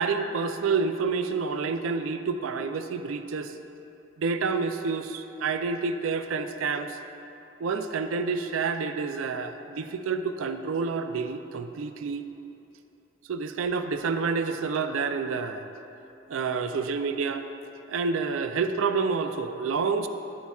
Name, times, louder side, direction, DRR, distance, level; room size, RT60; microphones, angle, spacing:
voice 1, 0.0-3.5 4.2-7.0 7.6-12.2 13.3-15.7 16.3-17.5 17.9-20.1, right 5 dB, 85° right, 9 dB, 0.4 m, -28 dB
11.0 x 8.4 x 2.3 m, 2.9 s
head